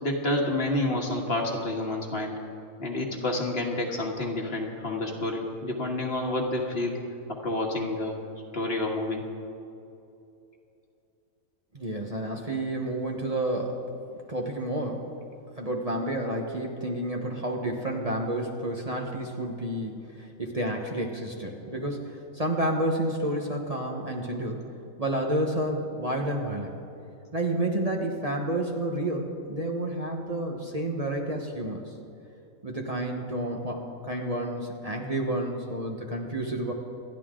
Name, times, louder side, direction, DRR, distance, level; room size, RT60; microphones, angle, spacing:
voice 1, 0.0-2.4 2.8-7.0 7.3-8.2 8.5-9.2, left 1 dB, 45° left, 1 dB, 1.9 m, -29 dB
voice 2, 11.7-13.9 14.3-15.1 15.6-24.7 25.0-26.7 27.3-31.9 32.6-36.7, right 1 dB, 30° right, 0 dB, 1.2 m, -30 dB
27.5 x 11.0 x 3.8 m, 2.8 s
omnidirectional pair, 1.4 m